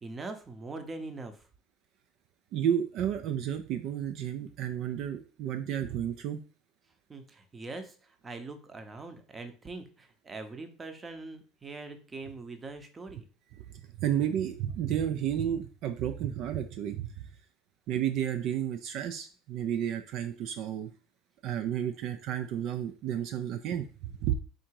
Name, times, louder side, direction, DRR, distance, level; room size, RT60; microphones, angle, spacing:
voice 1, 0.0-1.4 7.1-13.2, right 3 dB, 20° right, 7 dB, 0.7 m, -42 dB
voice 2, 2.5-6.4 13.7-17.1 17.9-20.9 21.4-24.3, right 10 dB, 60° right, 7 dB, 0.4 m, -32 dB
3.8 x 2.6 x 4.6 m, 0.37 s
supercardioid pair, 110°, 0 cm